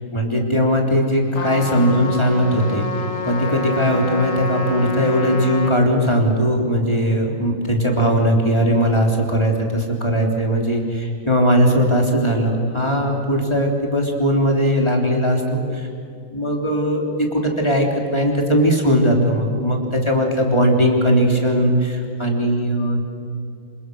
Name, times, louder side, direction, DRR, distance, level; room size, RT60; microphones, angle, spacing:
voice 1, 0.1-2.9 3.2-15.6 16.3-17.0 17.3-17.9 18.1-23.1, equal, 15° left, 0 dB, 3.5 m, -19 dB
Trumpet, 1.3-5.8, left 3 dB, 40° left, 1.6 m, -27 dB
28.0 x 25.5 x 6.5 m, 2.5 s
omnidirectional pair, 2.2 m